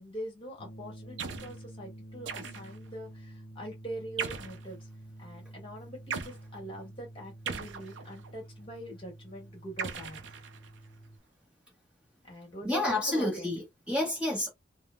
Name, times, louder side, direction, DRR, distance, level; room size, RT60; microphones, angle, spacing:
voice 1, 0.0-4.8 5.2-10.2 12.2-13.5, equal, 30° left, 1.3 m, -43 dB
sound 1, 0.6-11.2, right 1 dB, 60° left, 0.7 m, -49 dB
sound 2, 1.2-1.6 2.3-2.9 4.2-4.7 6.1-6.4 7.5-8.3 9.8-10.9, right 6 dB, 80° right, 0.5 m, -38 dB
voice 2, 12.6-14.5, left 1 dB, 5° right, 0.9 m, -29 dB
3.3 x 2.0 x 2.4 m
head